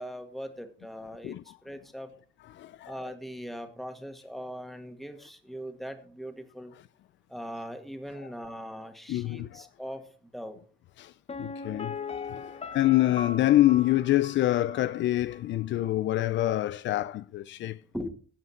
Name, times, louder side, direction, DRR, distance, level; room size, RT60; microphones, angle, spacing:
voice 1, 0.0-1.4 1.6-2.1 2.9-6.7 7.3-10.6 12.2-12.5 17.9-18.1, equal, ahead, 1.8 m, -40 dB
voice 2, 1.2-1.6 2.5-2.9 9.1-9.6 11.0-11.1 11.4-17.8, left 15 dB, 70° left, 0.4 m, -26 dB
Piano, 11.3-15.0 15.3-15.4, left 5 dB, 30° left, 0.8 m, -39 dB
16.5 x 5.7 x 4.3 m
cardioid pair, 90°, 20 cm